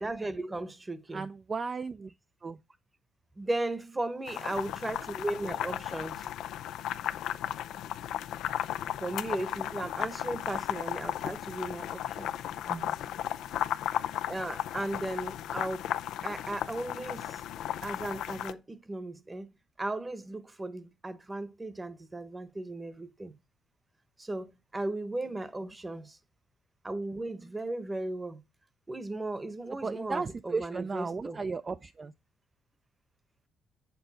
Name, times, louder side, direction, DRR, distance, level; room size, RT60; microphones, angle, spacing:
voice 1, 0.0-1.3 3.4-6.3 9.0-12.4 14.3-15.9 16.2-17.4 17.8-19.5 19.8-23.3 24.2-26.2 26.8-28.4 28.9-31.4, right 2 dB, 20° right, 1.0 m, -36 dB
voice 2, 1.1-2.1 2.4-2.6 12.6-13.0 29.8-32.1, right 4 dB, 35° right, 0.5 m, -35 dB
sound 1, 4.3-18.5, left 11 dB, 85° left, 0.5 m, -35 dB
7.7 x 7.0 x 4.1 m
cardioid pair, 90°, 0 cm